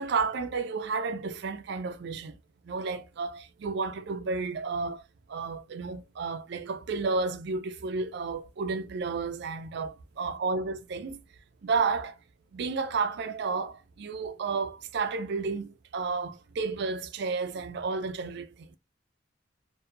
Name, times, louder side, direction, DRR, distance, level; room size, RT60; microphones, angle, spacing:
voice 1, 0.0-2.4 2.7-5.0 5.3-11.2 11.6-12.2 12.5-18.5, right 4 dB, 60° right, 0.4 m, -31 dB
2.7 x 2.2 x 2.4 m
head